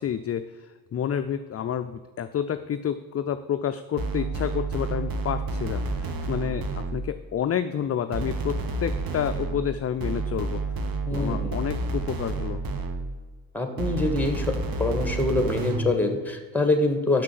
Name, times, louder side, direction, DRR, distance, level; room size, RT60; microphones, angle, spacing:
voice 1, 0.0-12.6, left 9 dB, 35° left, 10 dB, 0.5 m, -30 dB
sound 1, 4.0-7.2 8.1-13.3 13.8-16.0, right 2 dB, 50° right, 1.2 m, -30 dB
voice 2, 11.1-11.6 13.5-14.5 14.8-17.2, left 2 dB, 5° left, 6 dB, 1.8 m, -25 dB
6.7 x 6.1 x 7.4 m, 1.5 s
hypercardioid pair, 50°, 46 cm